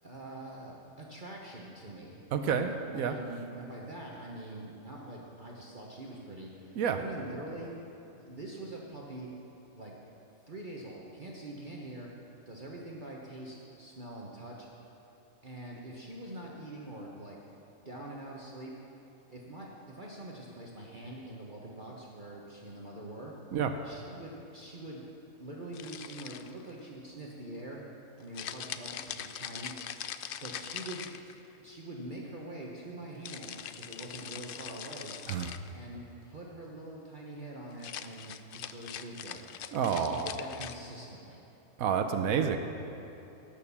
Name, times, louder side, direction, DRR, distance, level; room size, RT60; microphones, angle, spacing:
voice 1, 0.0-2.2 2.5-7.8 8.1-9.3 9.7-9.9 10.4-12.1 12.5-14.7 15.4-17.4 17.8-18.8 19.3-23.3 23.8-25.0 25.4-27.8 28.2-30.0 30.4-31.0 31.6-35.1 35.7-39.4 39.9-41.4, right 1 dB, 35° right, -3 dB, 1.3 m, -44 dB
voice 2, 2.3-3.2 6.8-7.0 23.5-23.7 35.3-35.6 39.7-40.3 41.8-42.6, right 7 dB, 85° right, 7 dB, 1.2 m, -29 dB
sound 1, 25.7-26.7 28.3-31.6 33.2-35.7 37.7-40.7, left 9 dB, 75° left, 0.5 m, -42 dB
17.5 x 6.6 x 7.1 m, 2.9 s
omnidirectional pair, 1.5 m